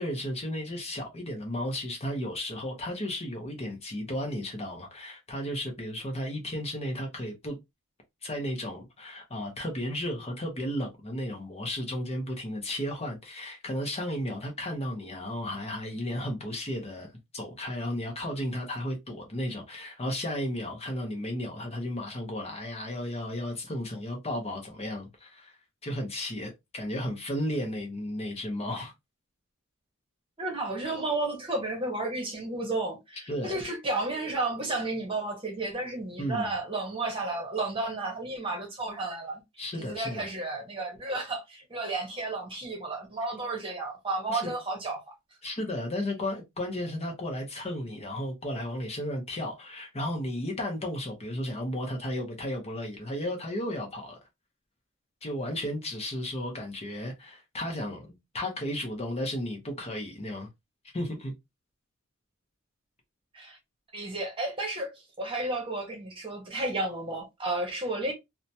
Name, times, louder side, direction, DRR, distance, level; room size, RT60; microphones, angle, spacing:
voice 1, 0.0-7.6 8.2-25.6 25.8-28.9 33.3-33.6 36.2-36.5 39.6-40.3 44.3-44.5 45.4-54.2 55.2-60.5 60.9-61.3, left 1 dB, 30° left, 0.8 m, -34 dB
voice 2, 30.4-39.4 39.8-45.0 63.3-63.6 63.9-64.9 65.2-68.1, right 2 dB, 25° right, 1.0 m, -32 dB
2.8 x 2.2 x 2.7 m
head